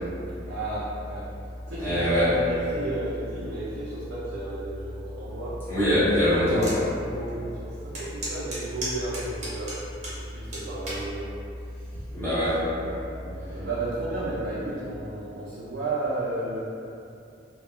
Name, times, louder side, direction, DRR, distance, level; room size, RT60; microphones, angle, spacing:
voice 1, 0.5-1.3 1.7-5.6 7.0-11.3 11.7-12.0 12.3-16.6, right 2 dB, 65° right, -8 dB, 0.4 m, -33 dB
voice 2, 1.8-2.4 5.7-6.8 12.1-12.6, equal, 10° left, -14 dB, 1.1 m, -23 dB
sound 1, 6.6-6.8 7.3-7.4 7.9-10.2 10.5-11.0 11.8-12.1, right 2 dB, 35° right, 0.7 m, -34 dB
2.3 x 2.0 x 2.9 m, 2.6 s
head